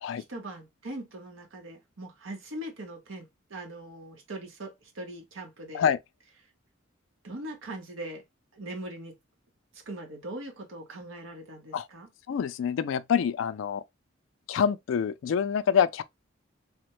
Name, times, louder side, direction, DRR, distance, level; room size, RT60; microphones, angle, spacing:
voice 1, 0.1-5.9 7.2-8.2 8.5-9.2 9.7-12.1, right 1 dB, 80° right, 1.0 m, -41 dB
voice 2, 12.3-13.8 14.5-16.0, left 7 dB, 70° left, 0.3 m, -26 dB
3.4 x 2.1 x 2.9 m
head